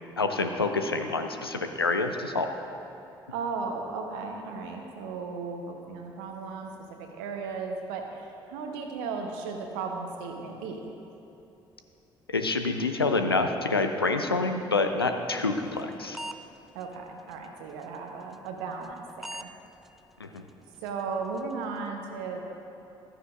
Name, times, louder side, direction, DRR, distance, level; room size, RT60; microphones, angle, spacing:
voice 1, 0.2-2.5 12.3-16.2 20.2-20.4, left 3 dB, 85° left, 6 dB, 0.5 m, -27 dB
voice 2, 3.3-10.9 16.7-19.5 20.8-22.4, right 4 dB, 65° right, 3 dB, 0.9 m, -36 dB
sound 1, 15.4-16.4 16.8-16.9 17.3-17.5 17.8-18.0 18.3-18.5 18.8-19.0 19.2-19.5 19.8-20.0 20.4-20.5 20.9-21.0 21.4-21.5, right 1 dB, ahead, 0.4 m, -39 dB
15.0 x 13.0 x 2.5 m, 2.9 s
figure-of-eight pair, 50°, 12 cm